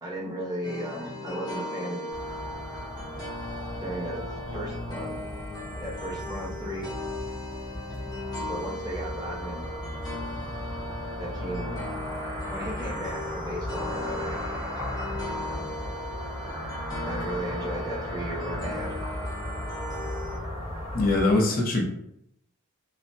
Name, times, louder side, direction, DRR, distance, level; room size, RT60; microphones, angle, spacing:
voice 1, 0.0-2.0 3.8-5.3 5.8-6.9 8.5-9.7 11.2-11.8 12.5-14.4 17.0-19.0, right 1 dB, 20° right, -5 dB, 0.5 m, -35 dB
sound 1, 0.6-20.4, left 1 dB, 20° left, 0.8 m, -37 dB
sound 2, 2.1-21.3, equal, 35° right, 1.2 m, -36 dB
voice 2, 20.9-21.8, left 2 dB, 45° left, -1 dB, 0.6 m, -22 dB
3.1 x 2.0 x 2.6 m, 0.80 s
head